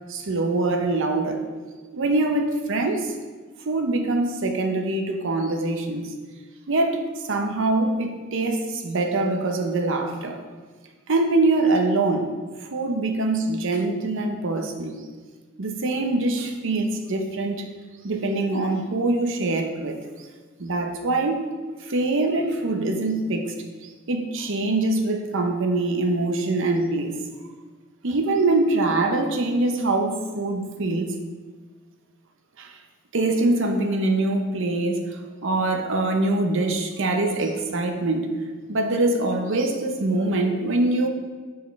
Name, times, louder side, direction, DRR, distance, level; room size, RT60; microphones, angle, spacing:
voice 1, 0.1-1.5 1.9-3.1 3.6-6.1 6.7-10.4 11.1-12.3 12.6-14.9 15.6-17.7 18.0-20.0 20.6-21.5 21.8-23.5 23.8-27.2 28.0-31.2 32.6-32.8 33.1-38.3 38.7-41.1, right 2 dB, 65° right, 4 dB, 0.7 m, -24 dB
9.2 x 4.8 x 3.2 m, 1.4 s
head